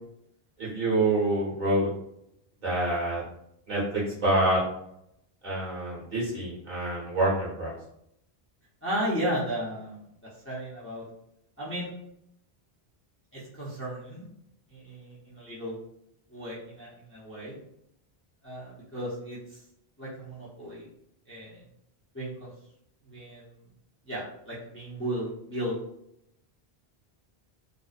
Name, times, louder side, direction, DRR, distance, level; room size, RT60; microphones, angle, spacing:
voice 1, 0.6-1.9 2.6-3.2 3.7-4.6 5.4-7.7, right 1 dB, 50° right, -8 dB, 1.2 m, -26 dB
voice 2, 8.8-10.0 10.4-11.1 11.6-11.9 13.3-14.2 14.7-15.8 16.3-17.5 18.4-19.6 20.0-20.9 21.3-21.6 22.1-22.5 23.1-23.6 24.1-25.8, equal, 15° left, -8 dB, 0.5 m, -34 dB
2.7 x 2.0 x 2.4 m, 0.77 s
omnidirectional pair, 1.0 m